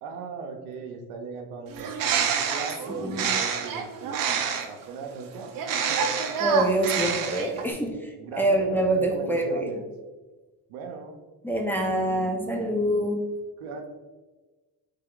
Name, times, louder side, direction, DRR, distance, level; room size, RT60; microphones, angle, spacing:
voice 1, 0.0-4.4 4.7-5.5 5.9-6.0 8.2-9.9 10.7-11.2 13.6-13.9, right 4 dB, 85° right, 3 dB, 0.8 m, -38 dB
Bird, 1.7-4.8 5.5-7.7, right 6 dB, 50° right, 0.7 m, -27 dB
voice 2, 2.9-3.3 6.4-9.8 11.4-13.2, right 1 dB, 5° left, 0 dB, 0.6 m, -25 dB
3.5 x 3.4 x 3.7 m, 1.2 s
supercardioid pair, 95°, 42 cm